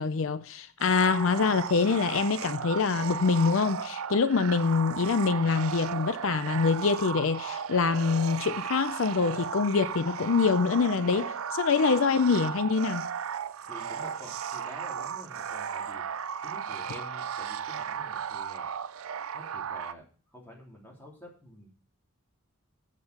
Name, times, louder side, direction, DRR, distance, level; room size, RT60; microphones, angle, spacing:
voice 1, 0.0-13.1, left 5 dB, 75° left, 0.5 m, -25 dB
sound 1, 0.8-19.9, right 7 dB, 85° right, 0.5 m, -35 dB
voice 2, 13.7-16.0 16.4-18.7 19.3-20.0 20.3-21.7, equal, 10° left, 3.3 m, -48 dB
8.0 x 7.5 x 6.7 m
head